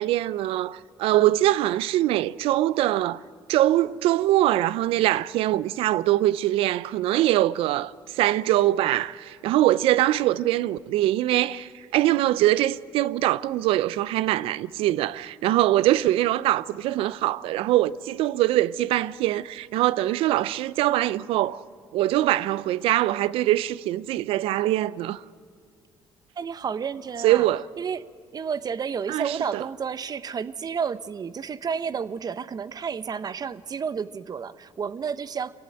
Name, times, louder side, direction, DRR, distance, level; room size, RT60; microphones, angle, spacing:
voice 1, 0.0-3.2 3.5-21.6 21.9-25.2 27.2-27.6 29.1-29.6, right 14 dB, 80° right, 0.5 m, -23 dB
voice 2, 26.4-27.5 27.8-28.1 28.3-35.5, right 6 dB, 45° right, 0.8 m, -31 dB
25.0 x 15.5 x 9.1 m
supercardioid pair, 75°, 10 cm